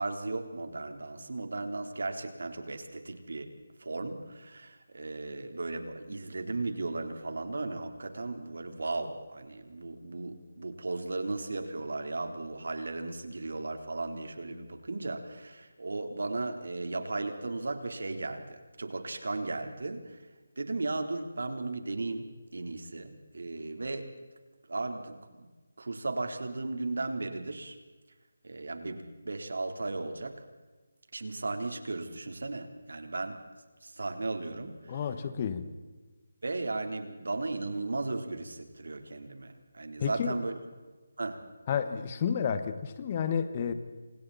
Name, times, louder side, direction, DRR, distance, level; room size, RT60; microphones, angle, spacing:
voice 1, 0.0-3.5 3.8-20.2 20.6-24.1 24.7-25.4 25.8-27.8 28.4-30.4 31.1-33.4 33.8-35.0 36.4-40.6 41.2-41.4, right 2 dB, 75° right, 6 dB, 3.8 m, -36 dB
voice 2, 34.9-35.7 40.0-40.4 41.7-43.7, left 7 dB, 30° left, 10 dB, 1.7 m, -31 dB
30.0 x 27.0 x 4.3 m, 1.2 s
figure-of-eight pair, 165°, 0 cm